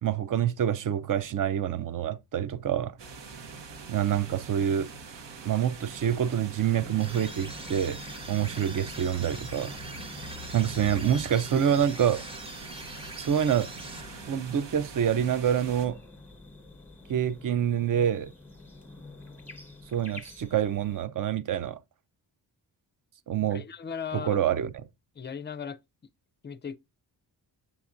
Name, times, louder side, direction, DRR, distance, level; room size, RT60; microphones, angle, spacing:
voice 1, 0.0-2.9 3.9-4.9 5.4-8.0 8.3-9.7 10.5-12.2 13.2-13.7 14.3-16.0 17.1-18.3 19.9-21.8 23.3-23.6 24.1-24.9, right 9 dB, 50° right, 0.5 m, -26 dB
sound 1, 3.0-15.9, right 3 dB, 85° right, 1.1 m, -43 dB
sound 2, 6.7-21.1, left 2 dB, 5° left, 1.1 m, -49 dB
sound 3, 7.0-14.5, right 1 dB, 15° right, 0.7 m, -44 dB
voice 2, 23.5-24.4 25.2-25.8 26.4-26.8, left 7 dB, 25° left, 0.4 m, -37 dB
7.1 x 7.1 x 2.5 m
wide cardioid pair, 150°, 42 cm